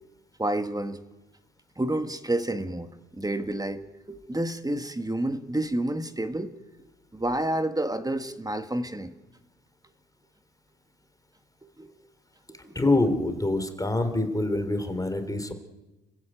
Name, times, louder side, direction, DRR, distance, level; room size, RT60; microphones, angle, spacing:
voice 1, 0.4-1.0 1.8-6.5 7.1-9.1 11.6-11.9 12.5-12.8, right 1 dB, 10° right, 8 dB, 1.8 m, -30 dB
voice 2, 12.7-15.5, left 2 dB, 10° left, 9 dB, 3.3 m, -25 dB
30.0 x 15.5 x 9.2 m, 1.1 s
cardioid pair, 90°, 30 cm